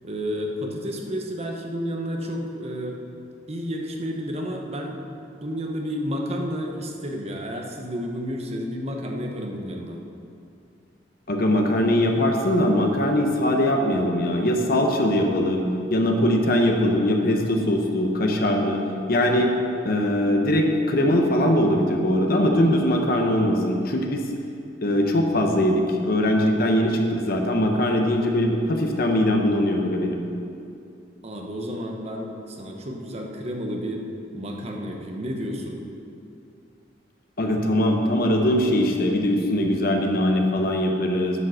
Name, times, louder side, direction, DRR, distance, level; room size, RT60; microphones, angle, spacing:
voice 1, 0.0-3.0 3.5-5.0 5.4-10.0 31.2-34.0 34.3-35.8, equal, 35° right, 1 dB, 0.9 m, -31 dB
voice 2, 11.3-18.8 19.1-19.5 19.8-24.3 24.8-30.2 37.4-41.4, left 1 dB, 55° left, 2 dB, 0.9 m, -21 dB
9.7 x 5.2 x 6.4 m, 2.6 s
head